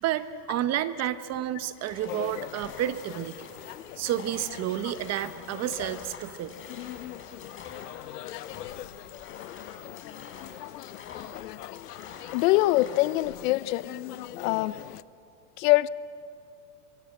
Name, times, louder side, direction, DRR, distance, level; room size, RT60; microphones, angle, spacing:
voice 1, 0.0-3.5 4.0-6.5, right 12 dB, 35° right, 13 dB, 1.0 m, -30 dB
sound 1, 1.7-13.3, left 5 dB, 25° left, 4.0 m, -48 dB
sound 2, 2.1-15.0, left 14 dB, 90° left, 0.8 m, -41 dB
voice 2, 12.3-13.9 14.4-14.7 15.6-15.9, left 18 dB, 60° left, 18 dB, 0.7 m, -23 dB
24.5 x 22.5 x 7.8 m, 2.8 s
supercardioid pair, 125°, 46 cm